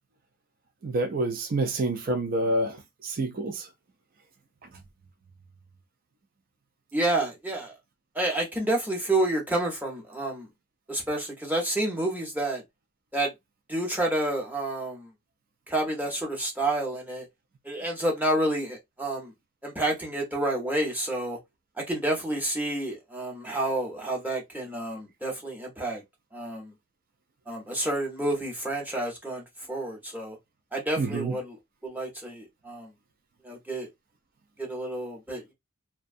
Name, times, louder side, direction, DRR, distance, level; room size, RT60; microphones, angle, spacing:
voice 1, 0.8-3.7 31.0-31.3, right 2 dB, 40° right, 0.4 m, -28 dB
voice 2, 6.9-7.8 8.1-10.5 10.9-12.6 13.1-13.3 13.7-15.1 15.7-17.3 17.6-19.3 19.6-21.4 21.9-26.0 26.3-26.7 27.5-30.4 30.7-31.6 31.8-32.9 33.4-33.9 34.6-35.5, right 1 dB, 10° right, 0.7 m, -29 dB
2.5 x 2.2 x 2.5 m
head